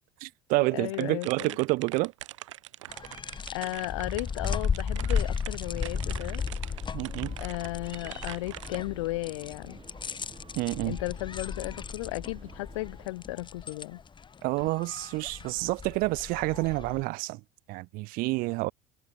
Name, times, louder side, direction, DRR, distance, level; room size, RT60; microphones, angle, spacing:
voice 1, 0.2-2.1 6.9-7.3 10.5-11.0 14.4-17.4 17.7-18.7, right 23 dB, 70° right, 1.5 m, -29 dB
voice 2, 0.7-1.6 3.5-6.4 7.4-9.8 10.8-14.0, left 20 dB, 85° left, 1.1 m, -35 dB
sound 1, 0.9-8.8, right 15 dB, 90° right, 1.0 m, -43 dB
sound 2, 2.9-17.0, left 6 dB, 30° left, 2.8 m, -35 dB
sound 3, 5.7-13.1, right 6 dB, 35° right, 3.6 m, -53 dB
hypercardioid pair, 80°, 15 cm